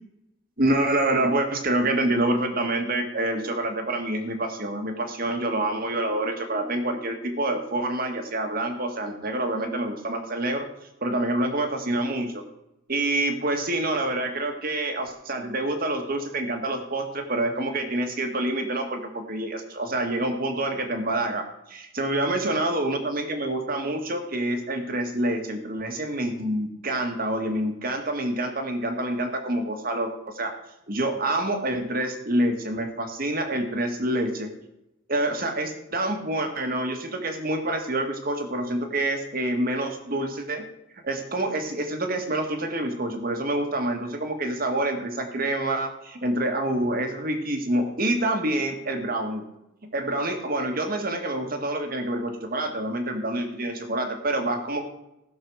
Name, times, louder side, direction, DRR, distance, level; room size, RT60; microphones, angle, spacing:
voice 1, 0.6-10.7 11.0-12.4 12.9-30.5 30.9-34.5 35.1-40.6 41.0-49.4 49.9-54.9, right 1 dB, 50° right, 5 dB, 1.9 m, -27 dB
16.0 x 6.6 x 6.4 m, 0.86 s
head